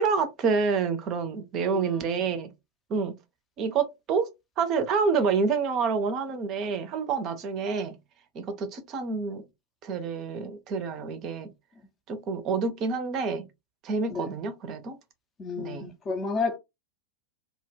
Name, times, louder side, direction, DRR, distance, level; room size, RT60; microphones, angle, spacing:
voice 1, 0.0-2.5 2.9-3.1 3.6-4.3 4.6-8.0 8.3-9.4 9.8-11.5 12.1-13.4 13.8-15.0 15.6-15.9, right 5 dB, 35° right, 0.5 m, -28 dB
voice 2, 1.7-2.1 14.1-14.3 15.4-16.6, left 4 dB, 25° left, 0.5 m, -31 dB
2.2 x 2.2 x 3.2 m
figure-of-eight pair, 90°, 0 cm